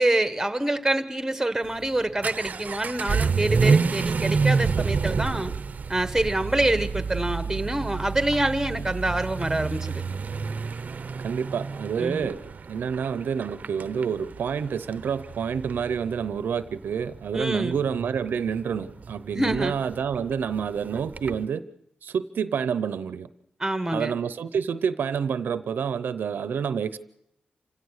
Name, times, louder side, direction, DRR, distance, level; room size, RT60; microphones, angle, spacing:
voice 1, 0.0-5.5 5.9-10.0 12.0-12.3 17.3-17.8 19.3-19.8 23.6-24.2, right 1 dB, 10° right, 11 dB, 1.5 m, -26 dB
Vehicle / Accelerating revving vroom, 1.6-21.4, right 5 dB, 50° right, 0.7 m, -29 dB
voice 2, 11.2-12.4 12.7-21.6 22.0-23.3 23.9-27.0, right 7 dB, 85° right, 14 dB, 0.7 m, -28 dB
28.0 x 16.5 x 6.5 m, 0.81 s
cardioid pair, 85°, 3 cm